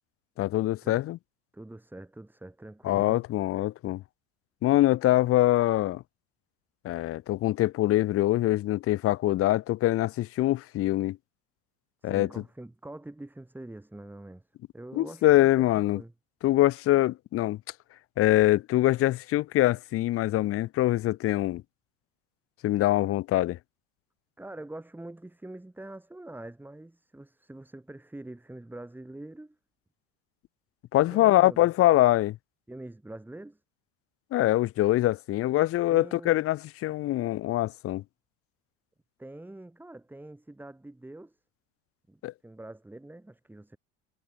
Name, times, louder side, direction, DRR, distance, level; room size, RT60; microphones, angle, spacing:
voice 1, 0.4-1.2 2.8-4.0 4.6-6.0 6.8-11.2 12.0-12.3 14.9-16.0 16.4-17.6 18.2-21.6 22.6-23.6 30.9-32.4 34.3-38.0 42.2-42.3, left 15 dB, 40° left, 0.8 m, -24 dB
voice 2, 1.5-3.2 12.0-14.4 14.7-16.1 24.4-29.6 31.1-31.7 32.7-33.6 35.9-36.4 39.2-41.4 42.1-43.8, right 1 dB, 5° right, 2.7 m, -44 dB
supercardioid pair, 120°, 33 cm